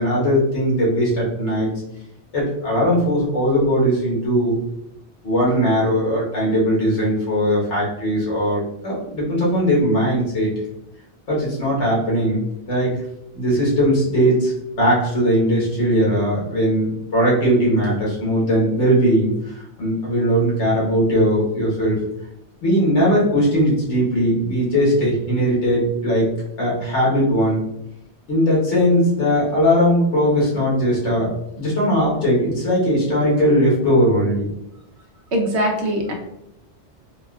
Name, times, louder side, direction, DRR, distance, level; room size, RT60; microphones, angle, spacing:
voice 1, 0.0-1.7 2.3-4.6 5.2-10.5 11.3-12.4 12.7-12.9 13.3-14.5 14.8-22.0 22.6-26.3 26.6-27.6 28.3-31.3 31.6-34.5, equal, 80° left, -6 dB, 1.5 m, -19 dB
voice 2, 35.3-36.1, equal, 75° right, 2 dB, 0.9 m, -21 dB
3.9 x 2.2 x 2.2 m, 0.82 s
omnidirectional pair, 1.2 m